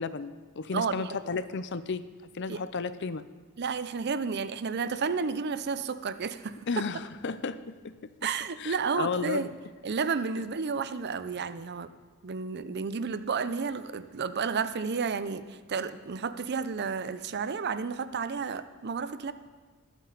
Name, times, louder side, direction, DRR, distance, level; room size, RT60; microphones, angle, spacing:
voice 1, 0.0-2.0 2.3-3.2 6.7-7.6 8.6-9.5, left 4 dB, 55° left, 14 dB, 0.6 m, -33 dB
voice 2, 0.7-1.2 2.5-2.6 3.6-6.6 8.2-9.5 9.8-11.9 12.2-19.3, right 5 dB, 50° right, 13 dB, 0.5 m, -31 dB
21.0 x 8.4 x 4.0 m, 1.5 s
head